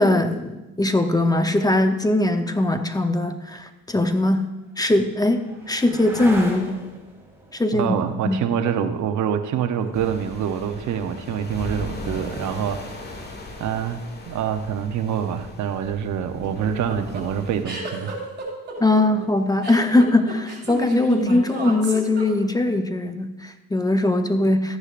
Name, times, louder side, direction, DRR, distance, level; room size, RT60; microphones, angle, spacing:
voice 1, 0.0-4.4 4.8-6.8 7.5-8.0 8.2-8.4 18.8-24.8, left 2 dB, 10° left, 7 dB, 0.8 m, -21 dB
sound 1, 4.4-11.5 13.9-14.4, right 1 dB, 10° right, 2.5 m, -40 dB
voice 2, 7.7-13.0 13.6-18.2, right 8 dB, 75° right, 8 dB, 0.8 m, -26 dB
sound 2, 9.9-17.6, left 2 dB, 35° left, 1.5 m, -38 dB
sound 3, 16.4-22.7, right 3 dB, 35° right, 4.1 m, -30 dB
13.5 x 9.8 x 2.5 m, 1.0 s
cardioid pair, 90°, 30 cm